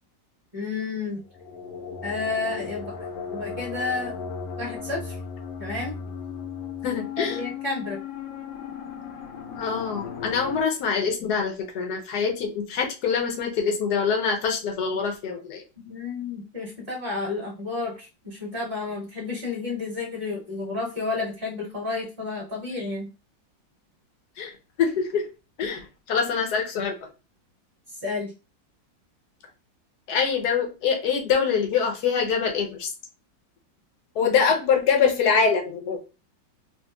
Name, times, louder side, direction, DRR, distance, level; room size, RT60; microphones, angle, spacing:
voice 1, 0.5-1.2 2.0-3.0 3.3-4.1 4.6-5.2 5.6-6.0 7.2-8.0 15.8-23.1 28.0-28.3 34.2-34.3, left 3 dB, 30° right, -5 dB, 1.8 m, -31 dB
sound 1, 1.2-10.6, left 6 dB, 85° left, 1.5 m, -36 dB
voice 2, 6.8-7.4 9.6-15.6 24.4-24.5 24.8-25.3 25.6-27.0 30.1-32.9 34.2-36.0, left 6 dB, 65° left, 3 dB, 1.1 m, -24 dB
4.3 x 2.5 x 2.2 m, 0.30 s
omnidirectional pair, 2.0 m